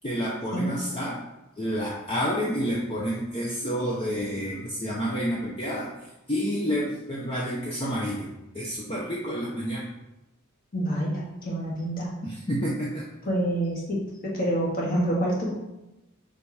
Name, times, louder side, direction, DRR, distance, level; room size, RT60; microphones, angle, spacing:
voice 1, 0.0-1.2 1.6-5.9 6.3-8.3 8.5-9.9 12.2-13.1, equal, 25° left, -5 dB, 0.8 m, -29 dB
voice 2, 10.7-12.1 13.3-15.5, right 1 dB, 40° left, -4 dB, 1.8 m, -27 dB
5.1 x 4.7 x 4.3 m, 0.97 s
head